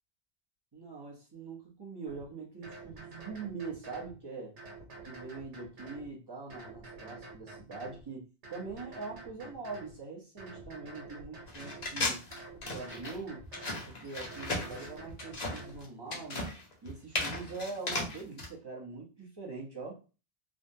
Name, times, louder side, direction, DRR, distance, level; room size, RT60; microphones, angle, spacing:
voice 1, 0.7-4.6 5.1-12.2 12.7-13.4 13.9-16.6 16.8-20.0, right 4 dB, 25° right, 0.7 m, -43 dB
sound 1, 2.1-2.2 2.6-4.1 4.6-6.1 6.5-8.0 8.4-10.0 10.4-11.9 12.3-13.8 14.2-15.8, right 3 dB, 85° right, 1.2 m, -48 dB
sound 2, 11.5-18.5, left 2 dB, 45° left, 0.7 m, -36 dB
3.4 x 2.1 x 2.7 m
omnidirectional pair, 1.1 m